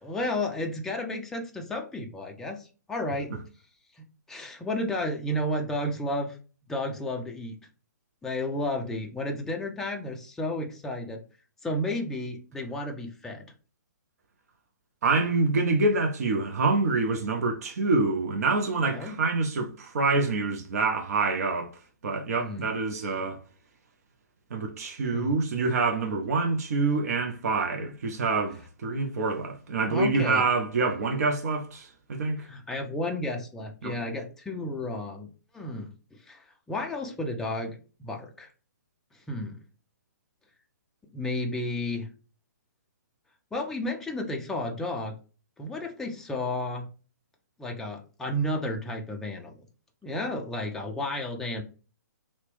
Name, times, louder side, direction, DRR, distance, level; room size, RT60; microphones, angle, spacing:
voice 1, 0.0-3.3 4.0-6.4 6.7-7.6 8.2-11.2 11.6-13.5 18.9-19.2 22.4-22.7 25.1-25.3 29.9-30.5 32.4-35.9 36.2-37.8 38.0-38.5 39.3-39.6 41.1-42.1 43.5-45.2 45.6-46.9 47.6-49.5 50.0-51.6, left 1 dB, 5° left, 0.3 m, -32 dB
voice 2, 15.0-21.8 22.0-23.4 24.5-32.5 33.8-34.0, right 3 dB, 55° right, 0.5 m, -26 dB
2.8 x 2.1 x 3.1 m
figure-of-eight pair, 130°, 10 cm